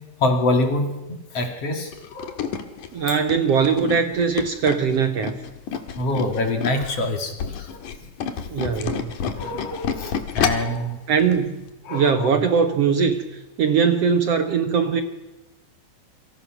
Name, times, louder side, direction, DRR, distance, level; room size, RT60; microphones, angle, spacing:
voice 1, 0.2-2.7 3.0-3.1 5.9-7.8 8.3-8.4 9.4-11.1 11.8-12.3, left 2 dB, 50° left, 5 dB, 3.4 m, -26 dB
Tools, 1.9-6.9 7.3-10.8 11.2-11.4 11.7-11.8, left 7 dB, 70° left, 3.2 m, -29 dB
voice 2, 2.9-5.4 8.5-9.1 11.1-11.6 11.9-13.2 13.6-15.0, right 6 dB, 60° right, 7 dB, 2.0 m, -20 dB
28.0 x 24.5 x 6.1 m, 1.0 s
omnidirectional pair, 3.8 m